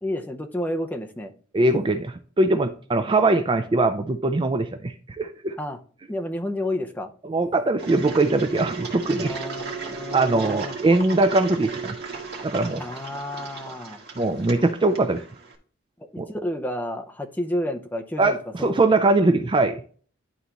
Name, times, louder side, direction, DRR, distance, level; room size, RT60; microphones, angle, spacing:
voice 1, 0.0-1.3 5.6-5.8 6.1-7.1 9.2-10.7 12.8-14.0 16.1-18.7, left 1 dB, 10° left, 4 dB, 0.7 m, -30 dB
voice 2, 1.5-5.6 7.2-9.4 10.1-11.9 12.4-12.9 14.2-15.2 16.2-16.3 18.2-19.8, right 2 dB, 25° right, 8 dB, 0.4 m, -21 dB
Engine, 7.8-15.5, right 4 dB, 55° right, 1.9 m, -35 dB
11.0 x 4.1 x 3.0 m, 0.44 s
head